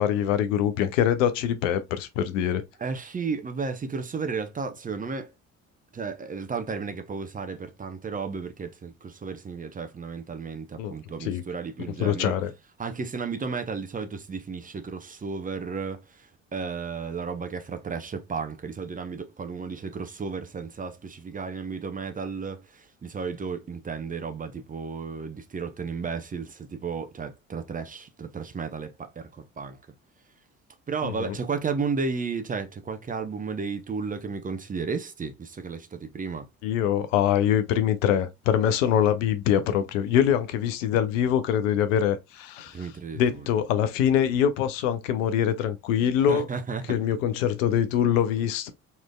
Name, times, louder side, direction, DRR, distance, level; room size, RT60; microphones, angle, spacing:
voice 1, 0.0-2.6 10.8-10.9 11.2-11.4 12.0-12.5 31.0-31.3 36.6-42.8 43.2-46.5 46.9-48.7, left 9 dB, 70° left, 0.6 m, -24 dB
voice 2, 2.8-5.3 5.9-12.3 12.8-29.8 30.9-36.5 39.7-39.8 42.7-43.5 46.3-47.0, right 5 dB, 20° right, 0.7 m, -33 dB
4.1 x 3.1 x 2.2 m
figure-of-eight pair, 50°, 40 cm